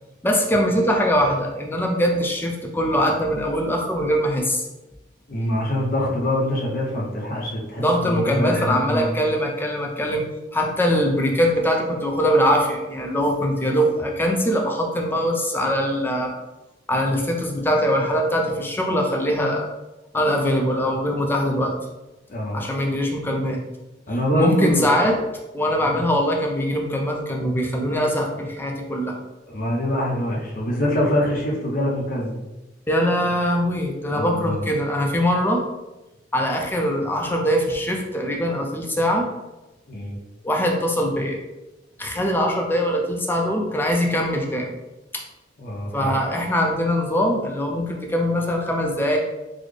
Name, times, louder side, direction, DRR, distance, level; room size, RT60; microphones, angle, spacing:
voice 1, 0.2-4.7 7.8-10.2 10.5-16.3 16.9-19.7 20.1-21.8 22.5-23.6 24.3-25.1 25.5-29.2 32.9-35.6 36.3-39.3 40.4-41.4 42.0-44.7 45.1-45.2 45.9-49.2, equal, 10° left, 1 dB, 0.5 m, -22 dB
voice 2, 5.3-9.2 22.3-22.7 24.1-24.9 25.8-26.0 29.5-32.4 34.1-34.7 39.9-40.2 45.6-46.1, equal, 50° left, -3 dB, 0.7 m, -24 dB
4.0 x 2.1 x 3.2 m, 1.0 s
head